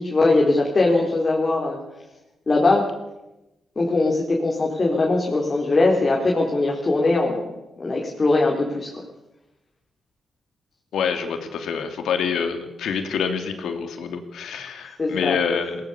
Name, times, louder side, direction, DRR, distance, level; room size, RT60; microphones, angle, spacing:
voice 1, 0.0-1.8 2.5-2.8 3.8-8.9 15.0-15.4, left 2 dB, 35° left, -1 dB, 4.1 m, -21 dB
voice 2, 10.9-15.8, left 6 dB, 85° left, 7 dB, 2.8 m, -26 dB
20.0 x 19.0 x 7.2 m, 0.96 s
cardioid pair, 85°, 0 cm